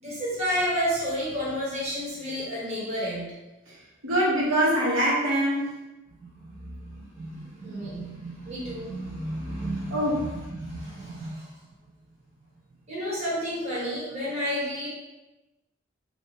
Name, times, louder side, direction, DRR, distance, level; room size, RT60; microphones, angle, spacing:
voice 1, 0.0-3.3 6.2-11.5 12.9-14.9, equal, 30° right, -7 dB, 1.0 m, -31 dB
voice 2, 4.0-5.8 9.9-10.3, right 1 dB, 80° right, -7 dB, 1.3 m, -23 dB
3.4 x 2.7 x 2.8 m, 1.1 s
head